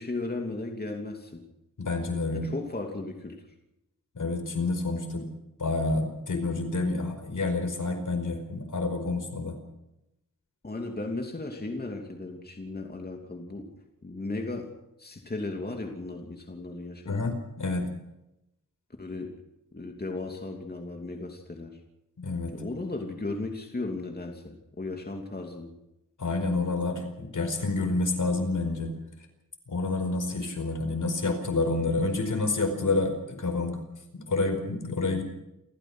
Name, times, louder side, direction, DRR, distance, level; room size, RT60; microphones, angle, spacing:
voice 1, 0.0-1.4 2.3-3.4 10.6-13.7 14.0-14.7 15.0-17.3 19.0-19.3 19.7-21.8 22.5-25.7, left 2 dB, 30° left, 2 dB, 2.9 m, -36 dB
voice 2, 1.8-2.5 4.1-5.2 5.6-9.6 17.0-17.9 22.2-22.5 26.2-28.9 29.7-33.8 34.3-35.2, left 3 dB, 70° left, 6 dB, 5.0 m, -28 dB
29.0 x 14.5 x 6.3 m, 0.88 s
wide cardioid pair, 90°, 32 cm